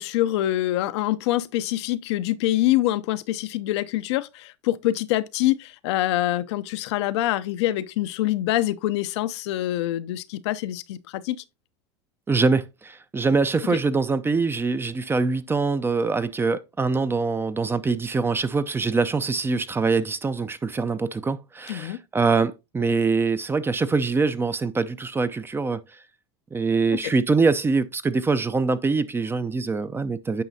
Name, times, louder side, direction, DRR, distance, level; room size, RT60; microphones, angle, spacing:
voice 1, 0.0-11.4 21.7-22.0 26.9-27.1, left 15 dB, 75° left, 0.5 m, -25 dB
voice 2, 12.3-25.8 26.5-30.4, right 4 dB, 15° right, 0.5 m, -24 dB
9.1 x 5.4 x 2.7 m
hypercardioid pair, 100°, 15 cm